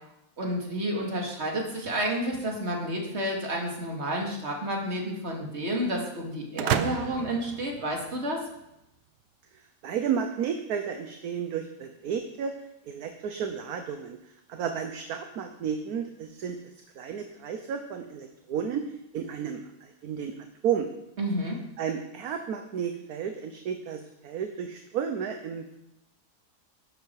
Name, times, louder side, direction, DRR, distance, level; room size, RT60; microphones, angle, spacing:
voice 1, 0.4-8.4 21.2-21.6, right 1 dB, 40° right, 0 dB, 2.5 m, -30 dB
sound 1, 6.6-8.5, right 10 dB, 85° right, 1.2 m, -31 dB
voice 2, 9.8-12.5 12.9-14.2 14.5-16.6 17.0-18.8 19.1-20.3 20.6-20.9 21.8-25.8, right 7 dB, 70° right, 6 dB, 1.3 m, -32 dB
12.0 x 11.0 x 4.7 m, 0.87 s
omnidirectional pair, 1.7 m